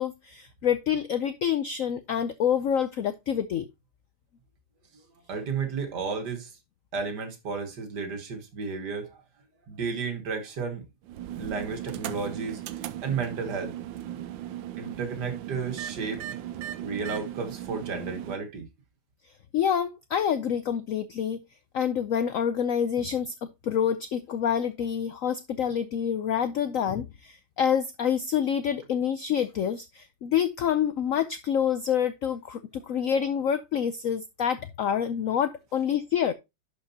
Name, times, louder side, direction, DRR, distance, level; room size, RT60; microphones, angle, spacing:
voice 1, 0.0-3.7 19.5-21.4 21.7-36.3, left 8 dB, 80° left, 0.7 m, -27 dB
voice 2, 5.3-6.6 6.9-9.2 9.7-10.8 11.4-13.7 14.8-18.7, right 5 dB, 60° right, 2.0 m, -33 dB
sound 1, 11.0-18.4, right 12 dB, 80° right, 1.3 m, -37 dB
11.0 x 5.0 x 2.8 m
omnidirectional pair, 2.1 m